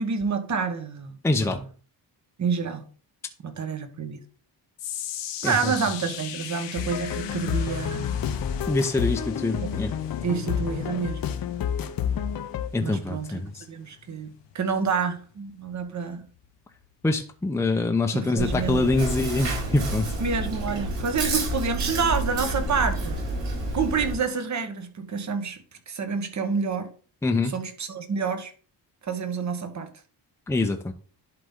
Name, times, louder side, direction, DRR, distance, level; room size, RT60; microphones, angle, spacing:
voice 1, 0.0-1.6 2.4-2.8 3.4-4.2 5.4-8.3 9.6-9.8 10.2-11.2 12.8-13.4 13.7-14.3 14.5-16.3 18.1-18.8 20.2-23.2 23.7-25.6 25.9-26.9 27.5-28.5 29.0-29.9, right 5 dB, 40° right, 1.3 m, -28 dB
voice 2, 1.2-1.6 5.4-5.7 8.7-9.9 12.7-13.6 17.0-20.1 27.2-27.5 30.5-30.9, left 2 dB, 5° left, 0.7 m, -25 dB
sound 1, 4.8-17.1 17.4-17.8 18.4-18.5, left 10 dB, 85° left, 1.1 m, -41 dB
sound 2, 6.8-12.7, left 8 dB, 55° left, 0.7 m, -29 dB
Chewing mastication, 18.4-24.1, right 1 dB, 80° right, 4.6 m, -29 dB
11.0 x 4.2 x 3.7 m
cardioid pair, 135°, 42 cm